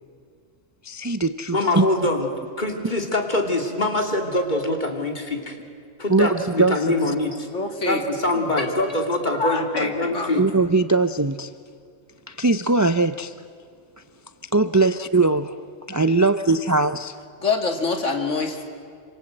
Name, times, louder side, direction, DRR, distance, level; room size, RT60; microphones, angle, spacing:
voice 1, 0.8-1.9 6.1-6.9 10.4-11.5 12.3-13.3 14.5-15.6 15.9-17.2, right 3 dB, 25° right, 11 dB, 0.4 m, -20 dB
voice 2, 1.5-2.3 2.6-5.6 6.0-7.5 7.9-10.4, left 2 dB, 40° left, 3 dB, 3.0 m, -24 dB
voice 3, 7.5-8.0 8.3-8.5 9.4-10.4 17.4-18.6, left 4 dB, 80° left, 4 dB, 2.8 m, -25 dB
27.0 x 26.0 x 7.8 m, 2.3 s
omnidirectional pair, 1.3 m